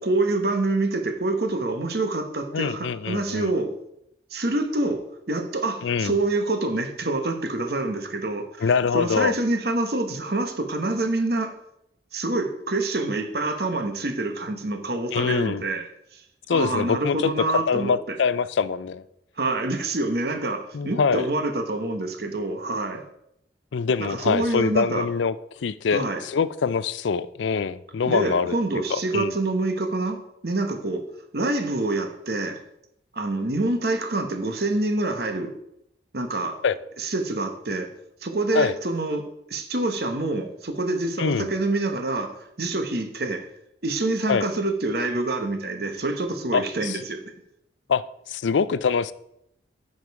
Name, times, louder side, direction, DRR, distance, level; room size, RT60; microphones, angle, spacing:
voice 1, 0.0-3.8 4.3-11.6 12.1-15.8 16.1-16.2 16.5-17.9 19.4-23.0 24.0-25.1 25.9-26.2 28.0-31.1 31.3-32.6 33.1-35.5 36.1-36.6 37.0-37.9 38.2-43.5 43.8-47.2, right 2 dB, 55° right, 6 dB, 1.1 m, -26 dB
voice 2, 2.5-3.5 5.8-6.1 8.6-9.3 15.1-15.6 16.5-17.3 17.7-19.0 20.7-21.3 23.7-25.4 25.6-28.5 28.9-29.3 36.6-36.8 38.5-38.7 41.2-41.5 44.3-44.5 46.5-47.0 47.9-48.0 48.3-49.1, left 5 dB, 85° left, 16 dB, 0.4 m, -24 dB
9.4 x 5.2 x 4.7 m, 0.79 s
head